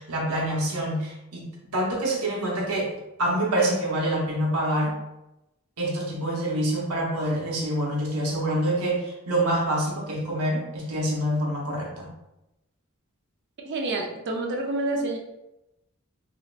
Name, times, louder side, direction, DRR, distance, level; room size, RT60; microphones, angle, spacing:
voice 1, 0.0-1.4 1.7-4.9 5.8-12.1, right 1 dB, 80° right, -2 dB, 0.9 m, -26 dB
voice 2, 13.6-15.2, right 2 dB, 50° right, 1 dB, 0.5 m, -28 dB
3.2 x 2.8 x 2.4 m, 0.92 s
head